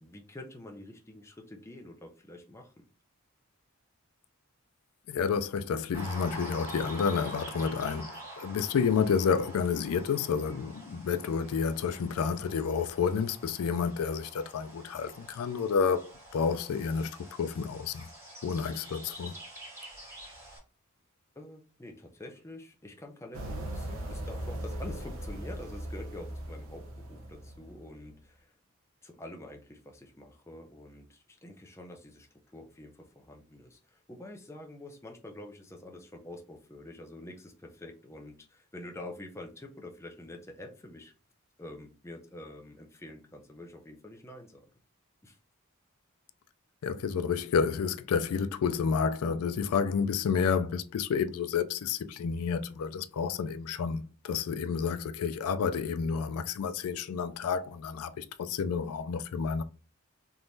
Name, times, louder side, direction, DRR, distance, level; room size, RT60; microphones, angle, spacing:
voice 1, 0.0-2.9 21.4-28.5 29.0-41.1 41.6-44.6 45.2-45.4, left 1 dB, 15° left, 0.5 m, -47 dB
voice 2, 5.1-18.1 18.4-19.3 46.8-59.6, left 6 dB, 90° left, 0.4 m, -30 dB
sound 1, 5.9-20.6, right 1 dB, 10° right, 1.3 m, -47 dB
sound 2, 23.3-28.1, right 1 dB, 75° right, 0.8 m, -39 dB
3.6 x 3.0 x 2.6 m
head